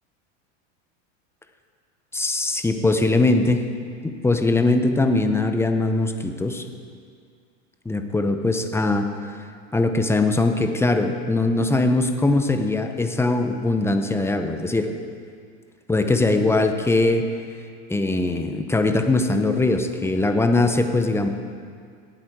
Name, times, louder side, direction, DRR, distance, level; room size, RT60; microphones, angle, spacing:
voice 1, 2.1-3.6 4.0-6.6 7.8-9.4 9.7-14.9 15.9-17.3 17.9-21.3, left 2 dB, 5° left, 6 dB, 0.7 m, -21 dB
18.0 x 8.3 x 4.7 m, 2.2 s
supercardioid pair, 120°, 38 cm